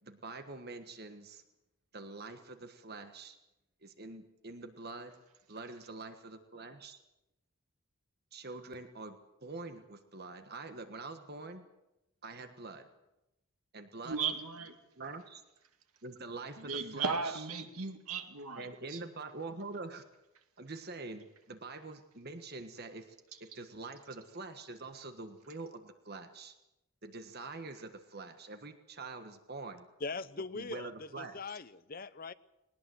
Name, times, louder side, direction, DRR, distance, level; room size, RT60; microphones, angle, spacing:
voice 1, 0.0-1.4 1.9-3.4 3.8-5.1 5.5-7.0 8.3-9.2 9.4-11.6 12.2-12.9 13.7-14.1 15.0-15.4 16.0-17.2 18.5-20.0 20.6-23.1 23.4-26.5 27.0-29.9 30.5-31.4, right 3 dB, 45° right, 1.4 m, -45 dB
voice 2, 14.0-14.8 16.6-19.0 23.3-23.4, right 5 dB, 80° right, 2.3 m, -36 dB
voice 3, 30.0-32.3, left 4 dB, 40° left, 0.8 m, -41 dB
20.5 x 19.5 x 7.9 m
head